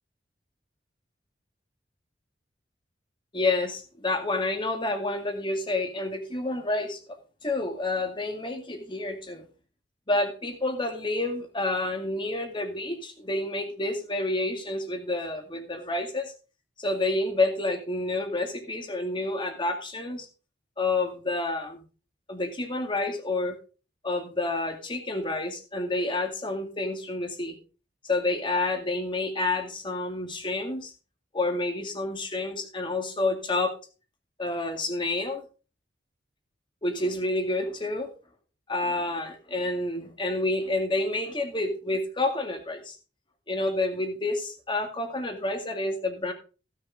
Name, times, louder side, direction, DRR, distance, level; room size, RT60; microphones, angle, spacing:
voice 1, 3.3-7.0 7.4-9.4 10.1-16.3 16.8-20.3 20.8-21.8 22.3-23.6 24.0-27.6 28.0-30.9 31.3-33.7 34.4-35.4 36.8-38.1 38.7-43.0 43.5-46.3, left 2 dB, 30° left, 4 dB, 2.1 m, -29 dB
15.5 x 6.6 x 3.8 m, 0.33 s
head